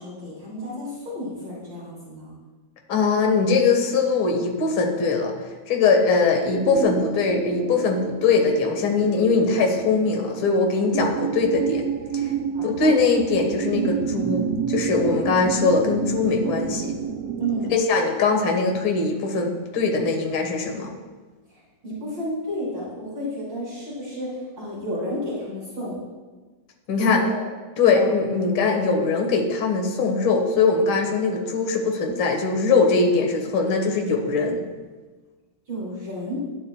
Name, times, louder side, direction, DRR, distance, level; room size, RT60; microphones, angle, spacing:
voice 1, 0.0-2.3 12.5-12.9 17.4-17.8 21.8-26.0 27.1-27.4 27.8-28.1 35.7-36.4, right 1 dB, 40° right, -8 dB, 3.7 m, -31 dB
voice 2, 2.9-5.3 5.7-11.8 12.1-12.3 12.6-16.9 17.7-20.9 26.9-27.2 27.8-34.6, left 4 dB, 50° left, 2 dB, 2.0 m, -21 dB
sound 1, 6.4-17.8, right 8 dB, 70° right, 1.6 m, -29 dB
16.0 x 10.5 x 2.4 m, 1.3 s
omnidirectional pair, 3.4 m